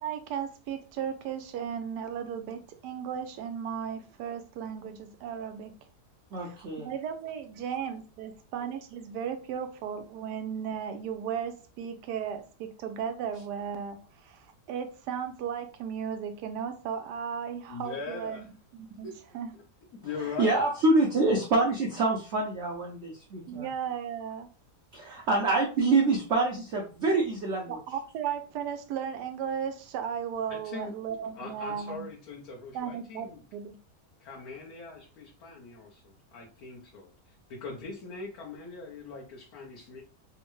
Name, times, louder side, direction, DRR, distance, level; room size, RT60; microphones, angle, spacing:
voice 1, 0.0-5.7 6.4-19.1 19.3-19.5 23.5-24.5 25.0-25.1 27.7-32.1 32.7-33.8, right 8 dB, 80° right, 7 dB, 1.2 m, -35 dB
voice 2, 6.3-6.9 20.4-23.7 24.9-27.7, right 2 dB, 65° right, -1 dB, 0.7 m, -26 dB
voice 3, 17.7-18.5 19.0-19.6 20.0-20.6 30.5-33.4 34.2-40.0, left 4 dB, 70° left, -3 dB, 1.2 m, -41 dB
3.6 x 2.1 x 3.0 m, 0.36 s
omnidirectional pair, 1.8 m